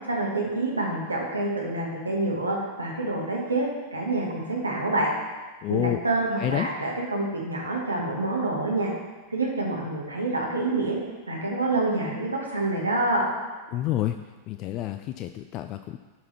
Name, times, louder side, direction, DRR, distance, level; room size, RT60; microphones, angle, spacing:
voice 1, 0.1-5.1 5.7-8.9 9.3-11.0 11.3-13.2, right 2 dB, 80° right, -2 dB, 1.9 m, -27 dB
voice 2, 5.6-6.0 6.3-6.7 13.7-14.2 14.5-16.0, left 13 dB, 40° left, 9 dB, 0.4 m, -28 dB
12.0 x 4.8 x 4.5 m, 1.3 s
figure-of-eight pair, 90°, 0 cm